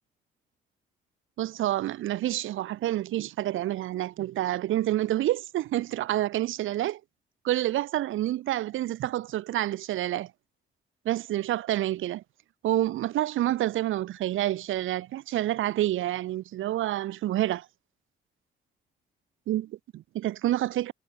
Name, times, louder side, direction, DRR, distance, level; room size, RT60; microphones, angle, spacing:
voice 1, 1.4-7.0 7.4-10.3 11.1-12.2 12.6-17.7 19.5-20.9, right 14 dB, 85° right, 5.0 m, -28 dB
cardioid pair, 90°, 20 cm